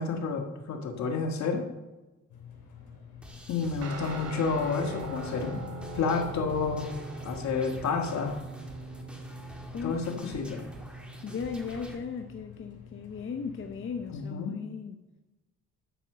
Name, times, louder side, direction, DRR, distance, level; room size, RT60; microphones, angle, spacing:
voice 1, 0.0-1.6 3.5-5.6 5.9-7.0 7.2-8.4 9.8-10.6 14.1-14.6, left 5 dB, 65° left, 4 dB, 1.6 m, -30 dB
sound 1, 2.3-14.2, left 6 dB, 80° left, 2.8 m, -50 dB
sound 2, 3.2-12.0, equal, 5° right, 2.0 m, -48 dB
Guitar, 3.8-12.0, right 2 dB, 55° right, 1.9 m, -41 dB
voice 2, 9.7-10.4 11.2-15.0, left 6 dB, 45° left, 5 dB, 0.8 m, -37 dB
12.0 x 4.4 x 6.6 m, 1.1 s
cardioid pair, 90°, 30 cm